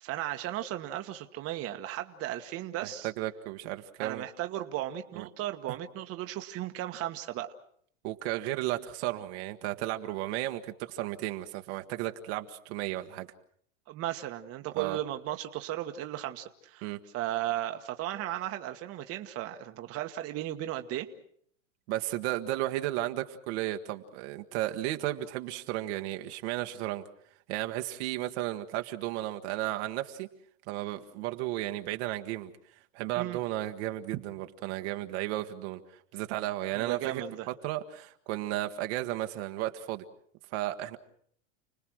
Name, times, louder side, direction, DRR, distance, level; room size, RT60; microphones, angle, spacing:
voice 1, 0.0-3.1 4.0-7.5 13.9-21.1 33.1-33.4 36.7-37.5, right 13 dB, 35° right, 6 dB, 1.5 m, -35 dB
voice 2, 2.8-4.2 5.1-5.3 8.0-13.3 14.7-15.0 16.8-17.0 21.9-27.0 27.5-30.3 30.7-32.5 32.9-35.8 36.1-37.2 37.6-40.0 40.5-41.0, right 15 dB, 55° right, 6 dB, 1.5 m, -34 dB
30.0 x 19.5 x 6.3 m, 0.64 s
supercardioid pair, 125°, 39 cm